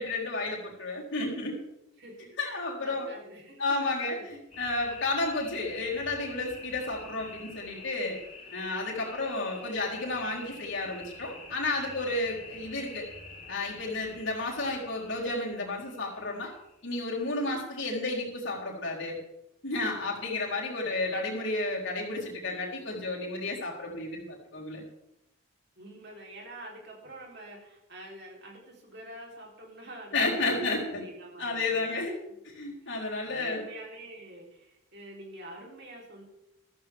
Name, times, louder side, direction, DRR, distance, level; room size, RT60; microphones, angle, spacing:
voice 1, 0.0-1.6 2.4-3.1 3.6-8.2 8.5-13.1 13.5-16.5 16.8-19.2 19.6-24.8 30.1-31.0 31.4-32.2 32.4-33.6, left 2 dB, 65° left, -3 dB, 4.0 m, -32 dB
voice 2, 2.0-3.6 4.0-4.4 25.8-30.7 31.0-32.4 32.8-36.2, right 1 dB, 50° right, -1 dB, 3.9 m, -47 dB
sound 1, 4.5-17.1, left 3 dB, 40° left, 4.5 m, -48 dB
14.0 x 14.0 x 3.6 m, 0.86 s
head